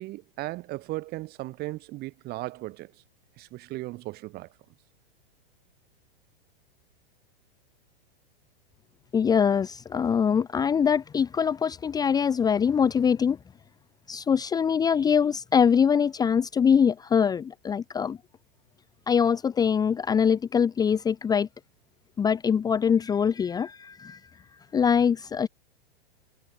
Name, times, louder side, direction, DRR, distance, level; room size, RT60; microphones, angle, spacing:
voice 1, 0.0-2.9 3.4-4.5, right 19 dB, 30° right, 4.3 m, -36 dB
voice 2, 9.1-13.4 14.1-18.2 19.1-21.5 22.2-24.2 24.7-25.5, left 7 dB, 15° left, 1.3 m, -23 dB
supercardioid pair, 150°, 30 cm